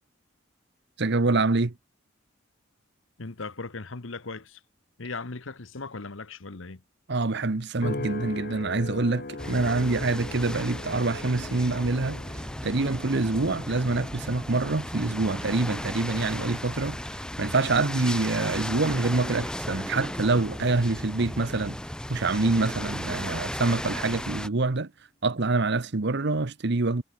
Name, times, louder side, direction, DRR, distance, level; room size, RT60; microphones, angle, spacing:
voice 1, 1.0-1.7 7.1-12.2 12.6-21.8 22.1-24.9 25.2-27.0, right 3 dB, 55° right, 1.0 m, -26 dB
voice 2, 3.2-4.6 5.0-6.8, left 3 dB, 75° left, 1.3 m, -38 dB
sound 1, 7.8-22.3 22.8-23.2, left 2 dB, 50° left, 1.2 m, -42 dB
sound 2, 9.4-24.5, left 1 dB, 5° left, 0.6 m, -35 dB
head